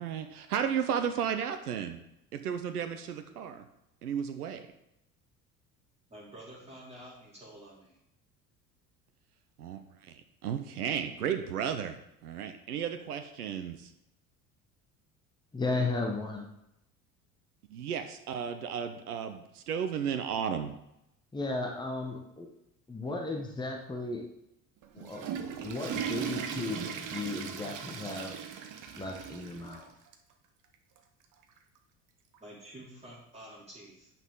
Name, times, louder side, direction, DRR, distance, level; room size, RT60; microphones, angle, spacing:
voice 1, 0.0-2.0 2.3-3.6 4.0-4.7 9.6-12.0 12.2-13.9 17.7-20.7, right 8 dB, 80° right, 8 dB, 0.7 m, -34 dB
voice 2, 6.1-8.0 32.4-34.1, right 1 dB, 15° right, -6 dB, 2.9 m, -49 dB
voice 3, 15.5-16.5 21.3-22.5 22.9-24.2 24.9-25.2 25.6-28.4 28.9-29.9, left 3 dB, 10° left, 1 dB, 1.3 m, -35 dB
Water / Toilet flush, 24.8-29.8 30.1-30.2 31.0-31.1 32.3-32.4, right 8 dB, 45° right, 1.0 m, -38 dB
9.0 x 5.8 x 3.7 m, 0.83 s
figure-of-eight pair, 60°, 45 cm